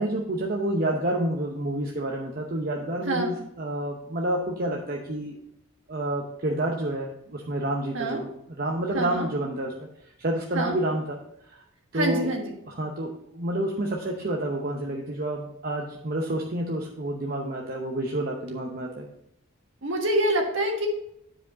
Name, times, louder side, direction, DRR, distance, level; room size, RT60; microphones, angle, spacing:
voice 1, 0.0-5.4 5.9-9.7 10.2-11.2 11.5-11.6 11.9-12.3 12.7-19.1, right 1 dB, 40° right, 0 dB, 0.8 m, -29 dB
voice 2, 8.9-9.3 10.5-10.7 11.9-12.5 19.8-20.9, right 1 dB, 60° right, 2 dB, 1.5 m, -26 dB
9.8 x 5.0 x 3.9 m, 0.77 s
head